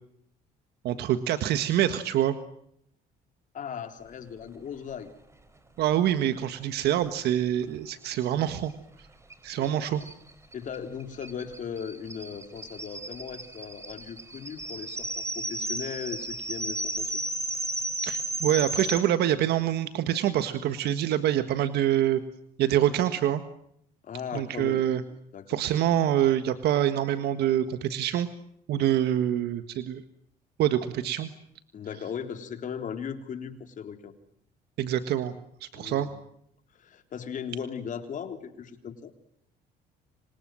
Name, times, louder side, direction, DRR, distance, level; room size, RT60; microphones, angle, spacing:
voice 1, 0.8-2.4 5.8-8.7 9.4-10.0 18.0-22.2 22.6-23.4 24.3-25.0 25.5-28.3 28.7-30.0 30.6-31.3 34.8-35.3 35.6-36.1, right 11 dB, 75° right, 10 dB, 1.6 m, -25 dB
voice 2, 3.5-5.1 9.6-10.0 10.5-17.2 24.0-24.8 25.3-25.6 31.7-34.1 35.7-36.2 36.7-39.1, left 7 dB, 50° left, 7 dB, 3.7 m, -38 dB
sound 1, 9.3-9.4 9.6-9.7 10.0-19.0, right 1 dB, 15° right, 4.5 m, -34 dB
30.0 x 26.0 x 7.7 m, 0.72 s
cardioid pair, 110°, 17 cm